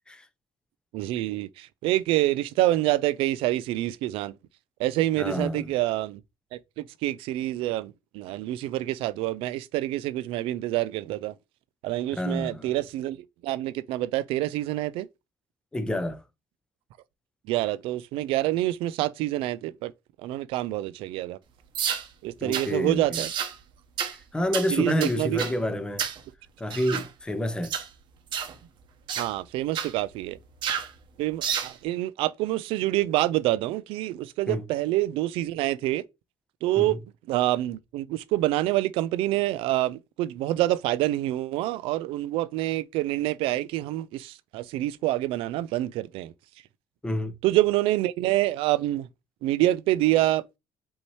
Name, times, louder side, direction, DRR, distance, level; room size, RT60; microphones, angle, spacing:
voice 1, 0.9-4.4 4.8-6.2 6.5-11.3 11.8-15.1 17.4-19.9 20.2-21.4 22.2-23.3 24.7-25.4 29.2-30.4 31.2-36.0 36.6-37.0 37.3-46.3 47.4-49.1 49.4-50.6, right 16 dB, 85° right, 0.4 m, -27 dB
voice 2, 5.2-5.7 12.2-12.7 15.7-16.2 22.4-23.2 24.3-26.0 26.6-27.7 34.5-34.6 36.8-36.9 47.0-47.3, left 1 dB, 10° left, 0.6 m, -28 dB
sound 1, 21.7-22.1 22.5-22.7 23.1-23.5 24.0-24.2 24.5-24.7 25.0-25.6 26.0-26.2 26.7-27.1 27.6-27.9 28.3-28.5 29.1-29.3 29.7-29.9 30.6-30.9 31.4-31.7, right 8 dB, 60° right, 0.8 m, -30 dB
5.4 x 2.8 x 3.2 m
cardioid pair, 120°, 9 cm